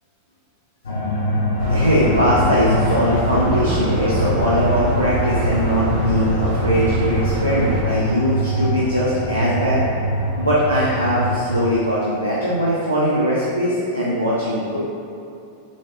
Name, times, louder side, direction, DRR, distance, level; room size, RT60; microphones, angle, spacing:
sound 1, 0.8-11.6, equal, 70° left, 0.6 m, -24 dB
sound 2, 1.6-7.8, right 1 dB, 50° right, 1.0 m, -25 dB
voice 1, 1.7-9.9 10.4-14.8, equal, 90° right, -9 dB, 0.6 m, -20 dB
7.1 x 2.9 x 2.3 m, 2.7 s
figure-of-eight pair, 90°, 0 cm